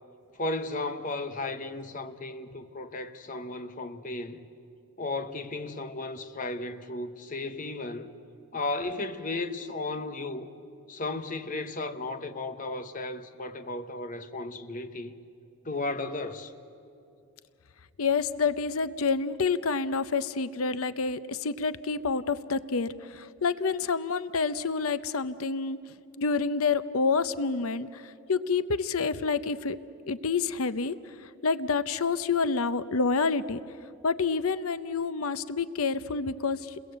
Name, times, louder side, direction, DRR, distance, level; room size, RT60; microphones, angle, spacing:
voice 1, 0.3-4.4 5.0-8.1 8.5-10.5 10.9-15.1 15.6-16.5, left 2 dB, 35° left, 1.1 m, -34 dB
voice 2, 18.0-25.8 26.2-29.8 30.1-31.0 31.2-33.6 34.0-36.7, left 4 dB, 75° left, 0.7 m, -28 dB
29.5 x 22.0 x 8.0 m
head